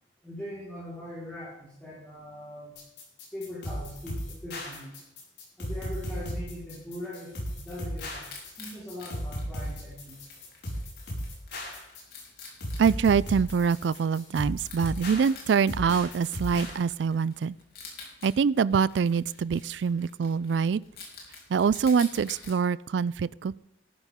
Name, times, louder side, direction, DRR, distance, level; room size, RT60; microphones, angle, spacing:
voice 1, 0.2-2.7 3.3-5.0 5.6-8.3 8.6-10.2, left 1 dB, 5° left, -9 dB, 4.4 m, -41 dB
sound 1, 2.8-16.8, equal, 70° left, 5.5 m, -36 dB
Wild animals, 6.6-22.6, left 4 dB, 55° left, 4.0 m, -50 dB
voice 2, 12.8-17.6 18.2-20.8 21.5-23.6, right 6 dB, 75° right, 20 dB, 0.3 m, -25 dB
13.5 x 12.0 x 3.7 m, 0.81 s
head